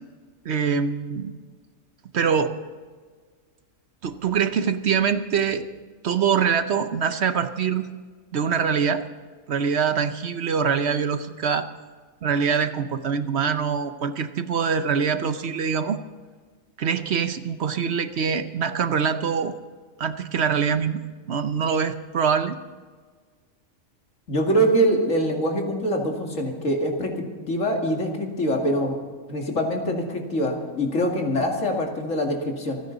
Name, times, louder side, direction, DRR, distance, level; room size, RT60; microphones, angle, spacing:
voice 1, 0.4-1.3 2.1-2.5 4.0-5.7 6.0-7.9 8.3-9.0 9.5-11.7 12.2-16.0 16.8-19.5 20.0-21.0 21.3-22.6, right 6 dB, 60° right, 10 dB, 1.0 m, -24 dB
voice 2, 24.3-29.0 29.3-32.8, equal, 75° left, 1 dB, 2.5 m, -24 dB
27.5 x 9.8 x 4.0 m, 1.5 s
omnidirectional pair, 1.3 m